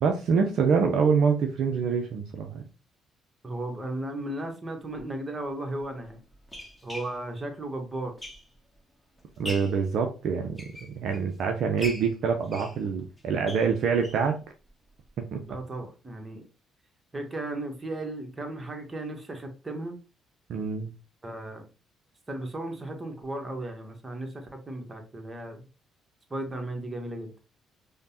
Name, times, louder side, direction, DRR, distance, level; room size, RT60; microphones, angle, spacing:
voice 1, 0.0-2.6 9.4-10.7 11.0-14.3 15.3-15.4 20.5-20.9, right 6 dB, 60° right, 3 dB, 0.4 m, -25 dB
voice 2, 3.4-6.2 6.8-8.2 15.5-16.4 17.1-20.0 21.2-21.6 22.3-25.7 26.3-27.3, right 1 dB, 25° right, 3 dB, 1.1 m, -35 dB
sound 1, 5.0-5.1 5.8-8.8 9.2-9.8 10.4-11.3 11.8-14.3 14.7-14.8 15.1-15.2 15.5-15.6, equal, 10° left, 1.1 m, -42 dB
5.0 x 2.1 x 2.7 m, 0.32 s
hypercardioid pair, 50°, 0 cm